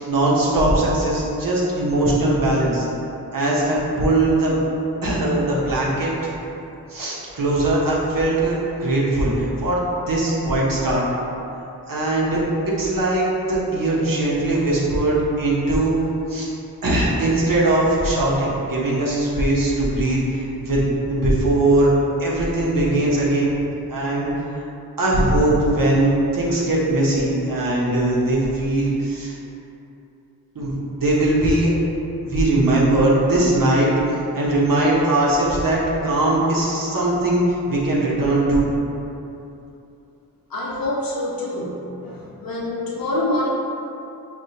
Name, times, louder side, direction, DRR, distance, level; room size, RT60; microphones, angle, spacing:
voice 1, 0.1-2.9 3.3-4.6 5.0-6.1 6.9-11.0 11.9-12.4 12.8-15.9 16.3-16.5 16.8-21.9 22.2-23.5 23.9-24.3 25.0-29.4 30.5-31.7 32.2-33.9 34.3-38.7, right 1 dB, 60° right, -6 dB, 1.1 m, -20 dB
voice 2, 40.5-43.5, left 1 dB, 65° left, -4 dB, 0.9 m, -26 dB
5.0 x 2.7 x 2.8 m, 2.8 s
cardioid pair, 40°, 38 cm